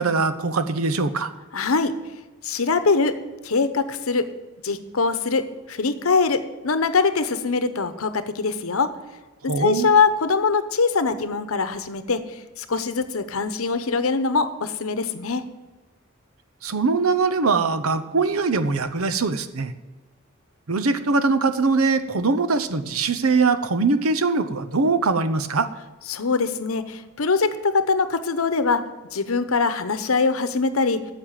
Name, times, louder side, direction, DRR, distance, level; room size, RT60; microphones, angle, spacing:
voice 1, 0.0-1.3 9.5-9.9 16.6-19.7 20.7-25.7, right 4 dB, 90° right, 12 dB, 0.8 m, -22 dB
voice 2, 1.5-1.9 2.4-3.2 3.4-4.3 4.6-8.9 9.6-15.4 26.1-28.8 29.1-31.0, left 4 dB, 85° left, 11 dB, 0.9 m, -22 dB
9.7 x 7.4 x 9.0 m, 1.2 s
head